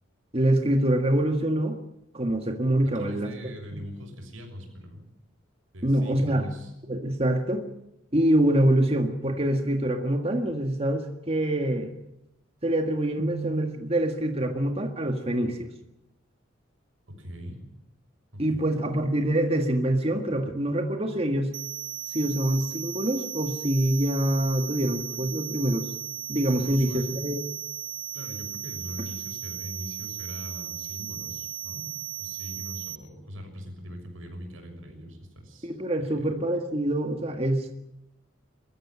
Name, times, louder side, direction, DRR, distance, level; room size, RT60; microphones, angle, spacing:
voice 1, 0.3-1.8 2.1-3.3 5.8-6.4 6.9-7.7 8.1-11.9 12.6-15.7 18.4-21.5 22.1-25.8 26.3-27.4 35.6-37.8, right 1 dB, 30° right, 5 dB, 1.9 m, -25 dB
voice 2, 2.8-5.1 5.7-6.7 17.1-17.7 18.3-19.0 25.1-25.2 26.6-27.1 28.1-31.9 32.2-35.7 36.2-36.3, equal, 85° right, 4 dB, 6.6 m, -41 dB
sound 1, 21.5-33.0, right 11 dB, 65° right, 1.0 m, -36 dB
22.5 x 14.5 x 10.0 m, 0.84 s
head